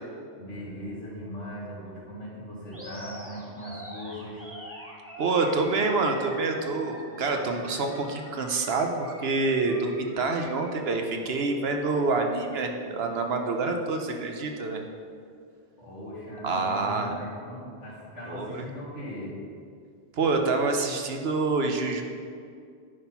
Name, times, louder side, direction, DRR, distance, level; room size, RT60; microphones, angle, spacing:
voice 1, 0.4-4.5 15.8-19.4, equal, 85° left, -7 dB, 2.7 m, -39 dB
Animal, 2.7-10.9, equal, 10° right, 1.4 m, -44 dB
voice 2, 5.2-14.8 16.4-17.1 18.3-18.6 20.2-22.0, right 3 dB, 60° right, 4 dB, 1.0 m, -27 dB
9.8 x 4.3 x 5.7 m, 2.3 s
omnidirectional pair, 1.2 m